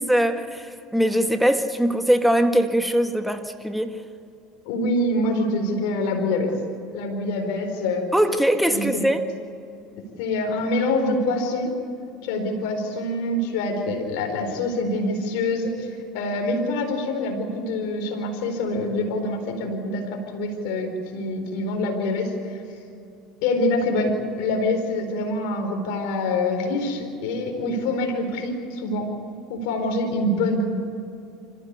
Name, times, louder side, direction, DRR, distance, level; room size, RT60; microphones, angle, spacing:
voice 1, 0.1-4.0 8.1-9.2, equal, 5° right, 1.7 m, -21 dB
voice 2, 4.6-6.5 6.9-8.1 8.7-9.1 10.2-11.7 12.2-15.9 16.1-22.6 23.4-29.1 29.5-30.6, left 2 dB, 75° left, 4.4 m, -25 dB
26.0 x 15.0 x 8.3 m
supercardioid pair, 90°, 0 cm